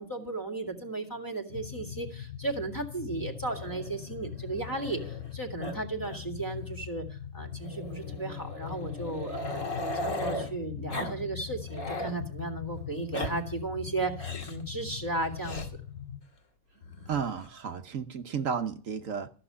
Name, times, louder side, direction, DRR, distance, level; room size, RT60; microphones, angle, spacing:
voice 1, 0.0-9.6 9.9-15.6, right 2 dB, 15° left, 3 dB, 1.9 m, -35 dB
sound 1, 1.5-16.2, left 10 dB, 75° left, 1.3 m, -42 dB
Growling, 3.4-5.3 5.6-5.8 6.0-6.2 6.5-6.6 7.6-10.5 10.9-11.2 11.5-12.2 12.9-13.3 14.2-14.6 15.4-15.7 16.8-17.5, left 1 dB, 60° left, 2.2 m, -37 dB
voice 2, 17.1-19.3, right 6 dB, 65° right, 8 dB, 1.2 m, -33 dB
14.0 x 6.8 x 9.6 m, 0.40 s
omnidirectional pair, 1.5 m